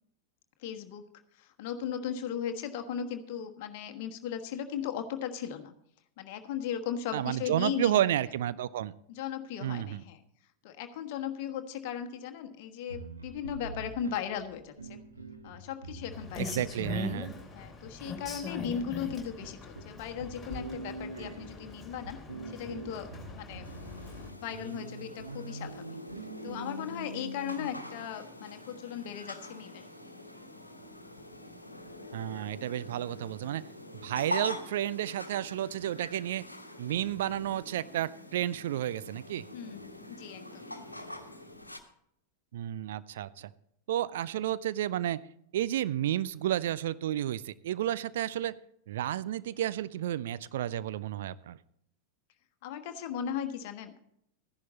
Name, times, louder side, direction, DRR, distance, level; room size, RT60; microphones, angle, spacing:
voice 1, 0.6-1.0 1.4-5.7 6.2-8.0 9.1-10.2 10.6-15.0 15.4-16.6 17.5-22.2 22.5-23.1 23.3-23.7 24.2-25.8 26.4-29.8 39.5-40.8 48.4-48.5 52.6-54.0, left 8 dB, 50° left, 6 dB, 1.3 m, -37 dB
voice 2, 7.1-8.9 9.6-10.0 16.4-17.3 32.1-33.7 34.0-36.5 36.8-39.5 42.5-43.5 43.9-45.2 45.5-48.6 48.9-51.6, right 12 dB, 55° right, 17 dB, 0.4 m, -31 dB
sound 1, 12.9-28.1, right 2 dB, 80° right, 1.4 m, -45 dB
Rain, 16.1-24.3, left 3 dB, 10° left, 3.4 m, -42 dB
sound 2, 23.6-41.8, left 1 dB, 85° left, 1.2 m, -44 dB
14.0 x 11.0 x 4.0 m, 0.72 s
figure-of-eight pair, 90°, 0 cm